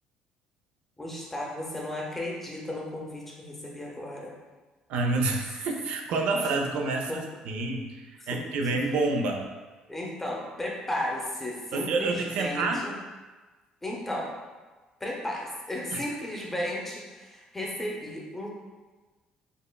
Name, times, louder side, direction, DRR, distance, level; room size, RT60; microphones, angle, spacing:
voice 1, 1.0-4.3 7.1-7.2 8.2-8.4 8.7-8.8 9.9-12.9 13.8-14.3 15.0-18.5, left 1 dB, 10° left, -2 dB, 0.6 m, -34 dB
voice 2, 4.9-9.5 11.7-12.8 15.9-16.0, right 3 dB, 75° right, 3 dB, 0.4 m, -28 dB
5.2 x 2.1 x 2.2 m, 1.3 s
cardioid pair, 125°, 2 cm